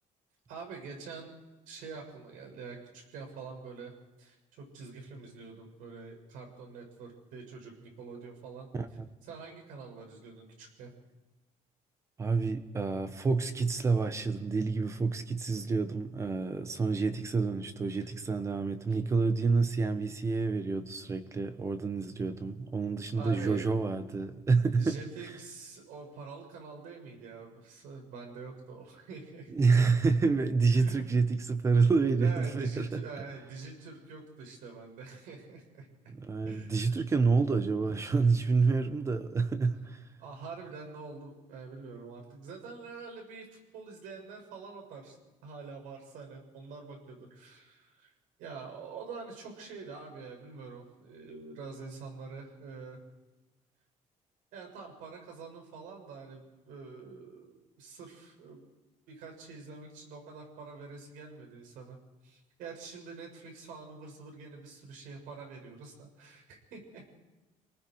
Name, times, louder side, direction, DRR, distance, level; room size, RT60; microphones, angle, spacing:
voice 1, 0.5-1.3 1.7-3.9 4.2-8.7 9.2-10.9 18.9-19.0 23.1-23.7 24.8-29.5 30.8-31.2 32.2-35.9 36.4-37.0 40.2-45.2 45.4-48.1 48.4-53.0 54.5-58.6 59.1-62.0 62.2-67.0, right 4 dB, 85° right, 2 dB, 6.7 m, -46 dB
voice 2, 12.2-24.9 29.5-33.0 36.1-40.0, right 4 dB, 20° right, 10 dB, 1.2 m, -28 dB
28.0 x 19.5 x 4.8 m, 1.1 s
cardioid pair, 165°, 13 cm